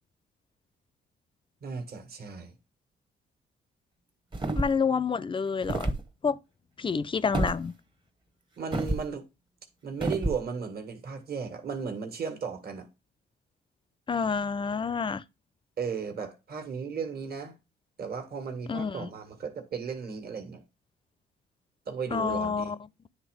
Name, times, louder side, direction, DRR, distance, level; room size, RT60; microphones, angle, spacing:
voice 1, 1.6-2.5 8.6-9.2 9.8-12.9 15.8-17.5 18.0-20.6 21.9-22.7, right 5 dB, 50° right, 1.7 m, -35 dB
sound 1, 4.3-4.9 5.6-6.0 7.3-7.6 8.7-9.1 10.0-10.4, right 2 dB, 25° right, 1.0 m, -29 dB
voice 2, 4.5-5.9 6.2-6.4 6.8-7.7 14.1-15.2 18.7-19.1 22.1-22.8, left 5 dB, 25° left, 0.5 m, -28 dB
9.6 x 3.3 x 4.9 m
cardioid pair, 90°, 20 cm